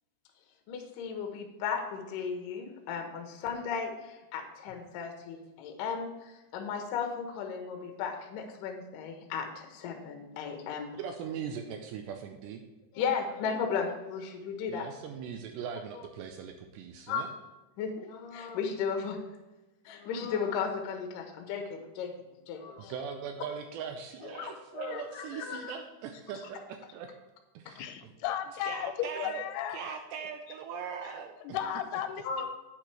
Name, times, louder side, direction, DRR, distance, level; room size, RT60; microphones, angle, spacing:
voice 1, 0.7-6.1 6.5-10.9 13.0-14.9 16.0-16.1 17.1-17.3 17.8-19.2 19.9-22.1 22.5-22.9 24.2-25.7 29.2-29.3 32.2-32.5, left 6 dB, 75° left, 4 dB, 2.1 m, -35 dB
voice 2, 10.9-12.6 14.7-17.3 22.8-27.1 27.5-28.1 28.6-29.4 29.7-31.6, right 7 dB, 85° right, 5 dB, 2.6 m, -40 dB
voice 3, 27.7-29.9 31.4-32.2, left 10 dB, 90° left, 9 dB, 3.0 m, -35 dB
11.0 x 8.7 x 3.3 m, 1.1 s
omnidirectional pair, 5.4 m